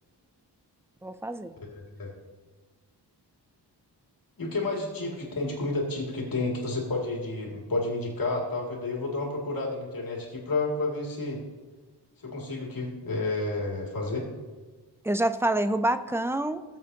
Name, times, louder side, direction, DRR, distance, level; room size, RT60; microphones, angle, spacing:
voice 1, 1.0-1.5 15.0-16.6, right 1 dB, 5° right, 10 dB, 0.3 m, -27 dB
voice 2, 1.7-2.1 4.4-11.4 12.2-14.3, left 2 dB, 55° left, -2 dB, 2.3 m, -30 dB
18.5 x 7.7 x 2.8 m, 1.3 s
wide cardioid pair, 150°, 41 cm